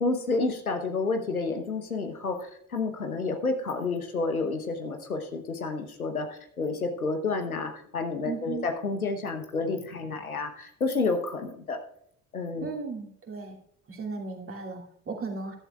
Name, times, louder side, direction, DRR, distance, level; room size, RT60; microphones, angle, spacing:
voice 1, 0.0-11.8 12.3-12.7, left 3 dB, 85° left, 6 dB, 1.1 m, -30 dB
voice 2, 8.2-8.7 12.6-13.6 13.9-15.6, right 4 dB, 30° right, 0 dB, 2.6 m, -36 dB
14.0 x 12.0 x 2.4 m, 0.69 s
figure-of-eight pair, 55°, 42 cm